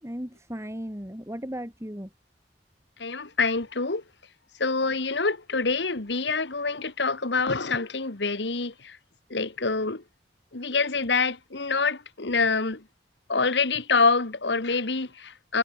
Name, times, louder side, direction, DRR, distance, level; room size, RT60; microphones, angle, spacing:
voice 1, 0.0-2.1, equal, 15° right, 4.5 m, -36 dB
voice 2, 3.0-4.0 4.6-9.0 9.3-10.0 10.5-12.8 13.3-15.6, left 4 dB, 80° left, 1.7 m, -26 dB
head